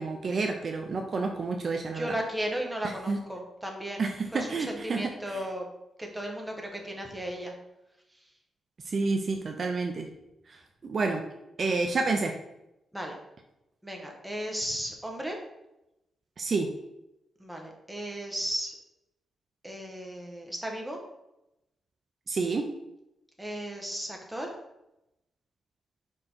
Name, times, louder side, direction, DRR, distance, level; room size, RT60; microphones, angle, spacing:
voice 1, 0.0-2.1 3.1-3.2 4.0-5.0 5.3-5.4 8.9-10.1 10.8-11.2 11.6-12.3 16.4-16.7 22.3-22.7, right 3 dB, 45° right, 4 dB, 0.5 m, -29 dB
voice 2, 1.9-5.7 6.0-7.5 12.9-13.1 13.8-15.4 17.4-18.7 19.6-21.0 23.4-24.5, right 1 dB, 5° right, 1 dB, 1.0 m, -35 dB
4.9 x 4.5 x 4.3 m, 0.91 s
wide cardioid pair, 130°, 0 cm